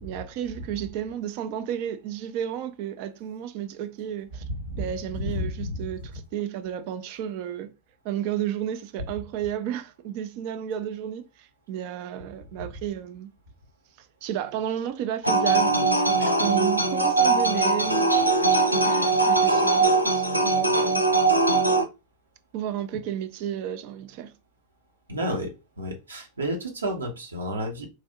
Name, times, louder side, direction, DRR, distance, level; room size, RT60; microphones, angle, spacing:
voice 1, 0.0-4.4 4.8-7.7 8.0-13.3 14.0-18.0 18.7-21.0 22.5-24.3, right 10 dB, 45° right, 0.5 m, -32 dB
voice 2, 5.1-5.8 25.1-27.9, equal, 75° right, 1.1 m, -31 dB
sound 1, 15.2-21.8, right 3 dB, 90° left, 0.5 m, -21 dB
3.3 x 2.6 x 3.6 m
figure-of-eight pair, 90°, 0 cm